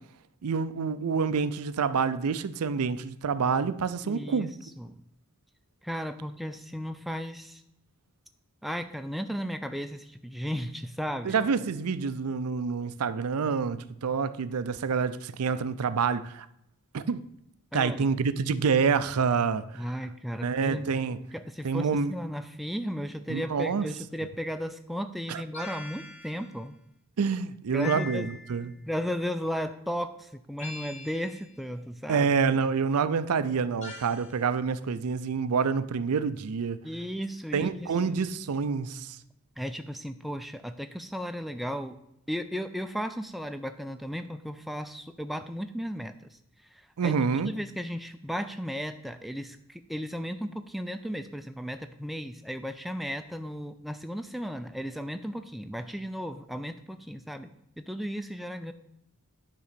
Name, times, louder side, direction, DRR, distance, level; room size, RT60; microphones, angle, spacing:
voice 1, 0.4-4.5 11.2-16.5 16.9-17.2 17.7-19.9 20.4-21.2 21.6-22.1 23.3-23.9 25.3-25.4 27.2-28.8 32.1-36.8 37.5-39.2 47.0-47.5, right 5 dB, 85° right, 0.5 m, -27 dB
voice 2, 4.0-4.5 4.8-5.0 5.8-7.6 8.6-11.4 17.7-18.1 19.7-21.1 21.3-26.8 27.7-28.3 28.9-32.3 36.8-37.9 39.6-42.0 42.3-46.4 46.7-47.1 47.5-58.7, equal, ahead, 0.3 m, -35 dB
sound 1, 25.5-26.5 27.8-28.7 30.6-31.5 33.8-34.4, left 3 dB, 30° left, 1.7 m, -42 dB
10.0 x 3.8 x 6.7 m
head